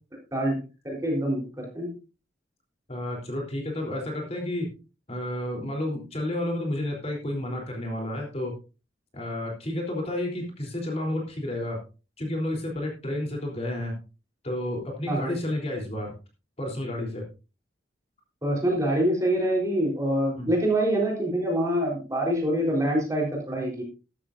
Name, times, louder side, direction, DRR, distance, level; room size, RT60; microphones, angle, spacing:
voice 1, 0.8-1.9 15.1-15.3 18.4-23.8, right 1 dB, 15° right, -1 dB, 3.8 m, -25 dB
voice 2, 2.9-4.7 5.1-8.5 9.1-11.8 12.2-13.9 14.4-16.1 16.6-17.2 20.3-20.5, left 1 dB, 35° left, 0 dB, 3.5 m, -31 dB
13.5 x 13.0 x 2.6 m, 0.32 s
head